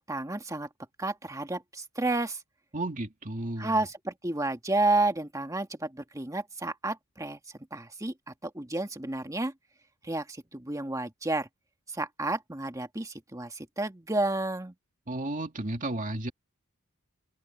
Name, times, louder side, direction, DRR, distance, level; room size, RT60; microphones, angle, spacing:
voice 1, 0.1-0.7 1.0-2.4 3.6-7.4 7.7-9.5 10.0-11.5 11.9-14.7, right 2 dB, 15° right, 1.7 m, -31 dB
voice 2, 2.7-3.8 15.1-16.3, right 2 dB, 35° right, 2.3 m, -33 dB
open air
head